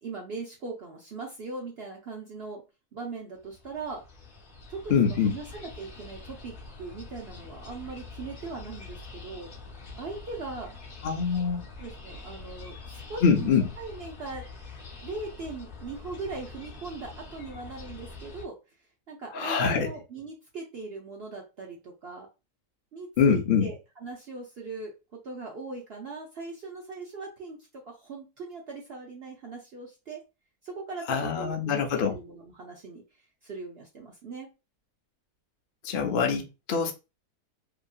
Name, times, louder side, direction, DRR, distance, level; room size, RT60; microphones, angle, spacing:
voice 1, 0.0-2.6 2.9-4.0 4.7-9.5 10.0-10.7 11.8-14.4 15.0-18.6 19.1-22.3 22.9-24.9 25.2-30.2 30.6-31.8 32.1-33.0 33.4-34.5, right 3 dB, 60° right, 0.7 m, -40 dB
sound 1, 3.4-18.5, left 3 dB, 45° left, 0.8 m, -45 dB
voice 2, 4.9-5.3 11.0-11.6 13.2-13.7 19.3-19.9 23.2-23.7 31.1-32.1 35.8-36.9, left 6 dB, 65° left, 0.5 m, -24 dB
2.8 x 2.6 x 2.3 m
omnidirectional pair, 1.6 m